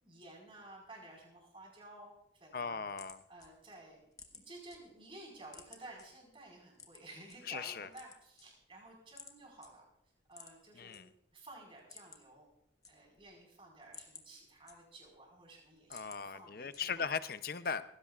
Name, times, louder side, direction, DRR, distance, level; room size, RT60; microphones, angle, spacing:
voice 1, 0.0-2.9 3.3-4.0 4.3-9.8 10.3-11.0 11.3-12.5 12.9-17.1, right 2 dB, 30° right, 0 dB, 4.8 m, -54 dB
voice 2, 2.5-3.2 7.5-7.9 10.7-11.1 15.9-17.8, left 6 dB, 50° left, 12 dB, 0.6 m, -38 dB
sound 1, 2.9-4.8 5.1-6.1 6.7-7.4 7.8-8.8 9.2-9.4 9.6-9.7 10.3-11.0 11.3-11.4 11.7-12.4 12.6-13.3 13.7-15.2 15.6-16.2 16.7-17.2, left 5 dB, 20° left, 1.2 m, -54 dB
19.0 x 16.0 x 2.4 m, 0.75 s
head